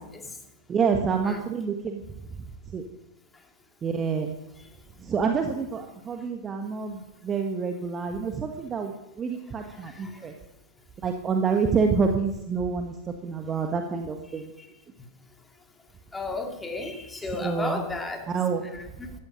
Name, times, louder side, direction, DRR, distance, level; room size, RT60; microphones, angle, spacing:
voice 1, 0.7-2.0 2.3-2.4 2.7-2.8 3.8-4.3 5.0-10.3 11.0-14.5 17.2-17.8 18.3-18.6, right 5 dB, 20° right, 4 dB, 1.5 m, -27 dB
voice 2, 9.9-10.3 14.6-14.7 16.1-18.3 18.6-19.1, left 3 dB, 10° left, 4 dB, 2.5 m, -34 dB
16.0 x 14.0 x 5.4 m, 0.90 s
figure-of-eight pair, 90°, 0 cm